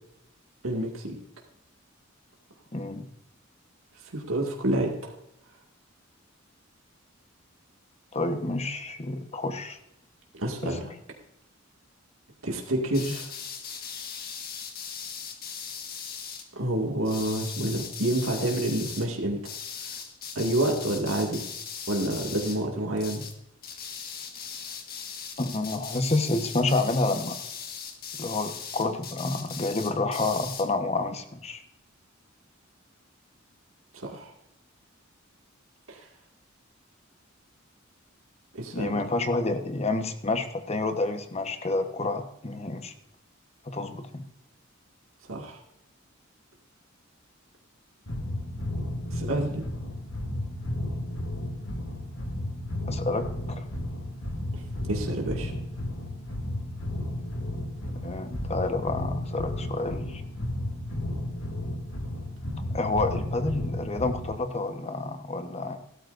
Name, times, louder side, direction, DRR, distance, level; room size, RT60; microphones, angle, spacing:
voice 1, 0.6-1.2 4.1-5.1 10.3-10.9 12.4-13.3 16.6-19.4 20.4-21.5 21.9-23.2 33.9-34.3 35.9-36.1 38.5-39.1 45.3-45.6 49.1-49.7 54.5-54.6 54.9-55.5, right 1 dB, 85° right, 0 dB, 2.2 m, -28 dB
voice 2, 2.7-3.1 8.1-9.8 10.6-10.8 25.4-27.4 28.2-31.6 38.7-42.9 43.6-44.2 52.9-53.6 58.0-60.2 62.7-65.8, left 2 dB, 30° left, 7 dB, 1.2 m, -29 dB
sound 1, 12.9-16.5 17.0-19.1 19.4-22.7 23.0-23.4 23.6-30.7, left 7 dB, 50° left, 1.7 m, -39 dB
sound 2, 48.1-64.5, left 1 dB, 70° left, 1.9 m, -33 dB
16.5 x 13.0 x 2.6 m, 0.83 s
head